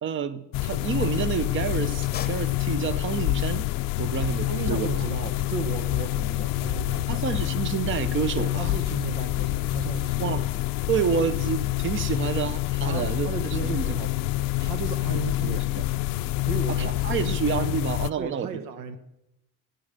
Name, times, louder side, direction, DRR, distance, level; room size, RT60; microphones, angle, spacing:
voice 1, 0.0-3.7 4.0-4.9 7.1-8.7 10.2-10.6 10.9-13.3 13.6-14.0 15.4-15.8 16.7-18.6, right 7 dB, 35° right, 15 dB, 0.8 m, -29 dB
sound 1, 0.5-18.1, left 17 dB, 80° left, 0.6 m, -27 dB
sound 2, 1.9-3.2, left 8 dB, 30° left, 0.8 m, -40 dB
voice 2, 4.5-7.2 8.4-10.4 12.8-15.7 16.4-16.9 17.2-17.4 18.2-19.0, right 6 dB, 80° right, 10 dB, 1.3 m, -35 dB
15.5 x 9.1 x 6.6 m, 0.87 s
cardioid pair, 160°, 33 cm